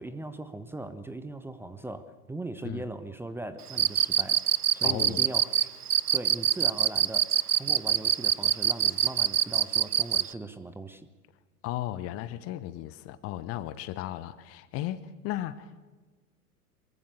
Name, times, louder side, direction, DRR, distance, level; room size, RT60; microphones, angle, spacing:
voice 1, 0.0-4.4 4.7-5.7 6.1-11.1, right 2 dB, 5° right, 12 dB, 1.0 m, -39 dB
Cricket, 3.7-10.3, right 9 dB, 75° right, 0.8 m, -24 dB
voice 2, 4.8-5.3 11.6-15.7, left 13 dB, 30° left, 16 dB, 1.1 m, -35 dB
24.0 x 22.5 x 7.1 m, 1.3 s
figure-of-eight pair, 95°, 46 cm